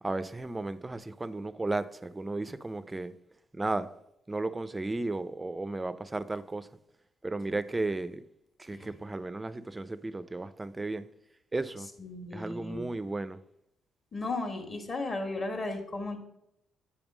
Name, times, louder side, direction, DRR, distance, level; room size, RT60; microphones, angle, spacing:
voice 1, 0.0-3.1 3.5-3.9 4.3-6.7 7.2-8.2 8.6-11.1 11.5-11.9 12.3-13.4, right 2 dB, 15° right, 0.4 m, -34 dB
voice 2, 12.0-12.9 14.1-16.2, left 2 dB, 40° left, 1.4 m, -35 dB
8.6 x 3.6 x 6.0 m
cardioid pair, 90°, 0 cm